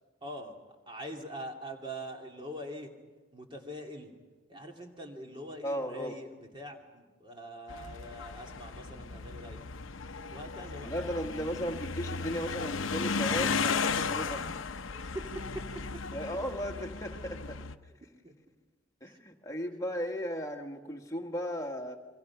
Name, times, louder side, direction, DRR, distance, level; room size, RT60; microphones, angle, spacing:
voice 1, 0.2-0.6 0.9-2.9 3.3-4.1 4.5-9.7 10.3-10.9 15.0-15.3 16.5-16.6 18.2-18.3 19.0-19.2, equal, 25° right, 2 dB, 2.5 m, -43 dB
voice 2, 5.6-6.2 10.8-14.5 16.1-17.6 19.0-22.0, equal, 15° left, 2 dB, 1.6 m, -36 dB
sound 1, 7.7-17.7, left 5 dB, 80° left, 0.8 m, -35 dB
26.5 x 23.5 x 5.9 m, 1.3 s
head